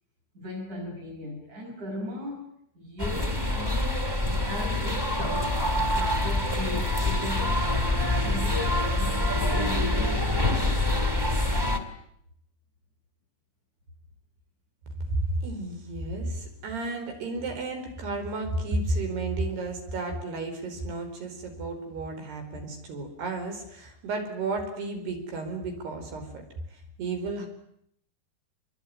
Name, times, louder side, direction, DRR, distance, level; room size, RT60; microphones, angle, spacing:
voice 1, 0.3-2.5 2.8-11.1, left 1 dB, 45° right, -4 dB, 8.9 m, -38 dB
sound 1, 3.0-11.8, left 2 dB, 10° right, 1.9 m, -26 dB
voice 2, 15.1-26.4 27.0-27.5, right 2 dB, 75° right, 5 dB, 6.8 m, -32 dB
26.0 x 22.5 x 9.8 m, 0.72 s
omnidirectional pair, 4.6 m